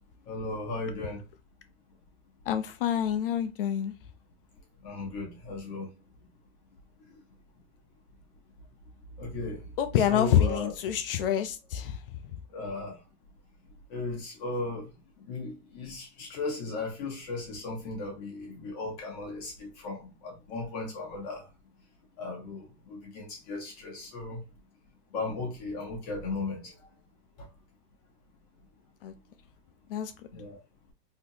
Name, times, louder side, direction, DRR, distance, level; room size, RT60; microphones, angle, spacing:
voice 1, 0.3-1.2 4.8-5.9 9.2-9.6 9.9-10.7 12.5-12.9 13.9-14.9 15.3-21.4 22.2-24.4 25.1-26.6 30.3-30.6, left 3 dB, 35° left, 1.0 m, -36 dB
voice 2, 2.5-3.9 9.8-12.0 29.0-29.1 29.9-30.1, left 9 dB, 55° left, 0.4 m, -27 dB
3.5 x 2.8 x 2.7 m
supercardioid pair, 160°, 34 cm